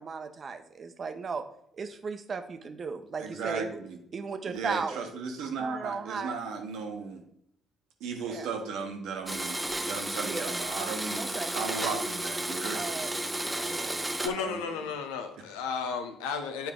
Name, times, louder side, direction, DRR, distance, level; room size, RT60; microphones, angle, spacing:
voice 1, 0.0-1.4 1.7-3.8 4.1-5.1 5.6-6.3 8.2-8.5 10.2-10.5 11.2-11.5 12.7-13.1 13.5-14.0, right 5 dB, 50° right, 8 dB, 0.8 m, -36 dB
voice 2, 3.2-4.0 4.5-7.2 8.0-12.8 14.1-14.6, right 5 dB, 75° right, 3 dB, 1.1 m, -36 dB
Domestic sounds home sounds, 9.3-14.3, right 1 dB, 15° right, 0.9 m, -33 dB
voice 3, 14.2-16.7, left 6 dB, 80° left, 7 dB, 0.7 m, -33 dB
8.7 x 4.5 x 3.7 m, 0.72 s
hypercardioid pair, 50°, 0 cm